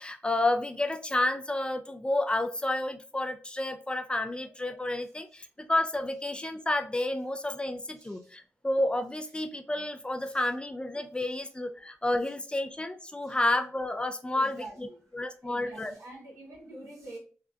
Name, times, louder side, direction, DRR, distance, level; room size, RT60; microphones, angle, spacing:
voice 1, 0.0-14.9 15.1-16.0, left 1 dB, 20° left, 6 dB, 0.4 m, -30 dB
voice 2, 14.3-15.0 15.4-17.2, right 2 dB, 80° right, -3 dB, 1.4 m, -45 dB
3.8 x 2.2 x 2.3 m, 0.39 s
supercardioid pair, 45°, 5 cm